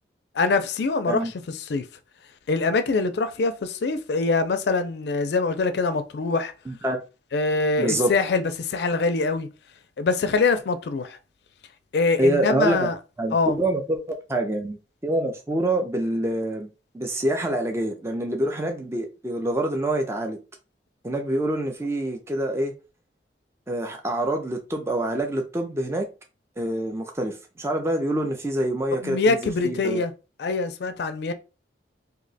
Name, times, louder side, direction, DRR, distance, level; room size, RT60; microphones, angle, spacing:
voice 1, 0.3-1.9 2.5-6.5 7.3-9.5 10.0-11.2 11.9-13.0 13.3-13.6 29.0-30.1 30.4-31.3, left 3 dB, 65° left, 0.4 m, -24 dB
voice 2, 6.7-7.0 7.8-8.1 12.2-12.9 13.2-16.7 16.9-20.4 21.0-22.7 23.7-26.1 26.6-30.0, right 1 dB, 15° right, 0.4 m, -26 dB
2.7 x 2.1 x 3.9 m
head